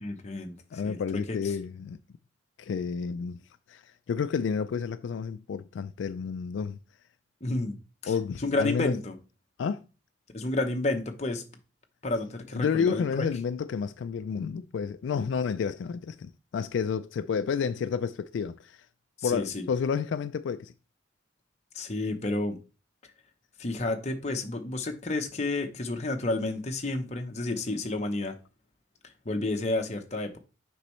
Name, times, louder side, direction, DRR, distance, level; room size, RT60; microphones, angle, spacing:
voice 1, 0.0-1.0 1.3-1.4 7.4-7.8 8.0-8.1 8.4-9.1 10.3-11.4 12.0-13.3 19.2-19.7 21.7-22.6 23.6-28.4 29.2-30.4, left 2 dB, 35° left, 0.8 m, -30 dB
voice 2, 0.7-2.0 2.6-3.4 3.7-6.8 8.1-9.0 9.6-9.8 12.5-18.9 19.2-20.7, left 6 dB, 75° left, 0.3 m, -30 dB
6.8 x 5.3 x 3.1 m
head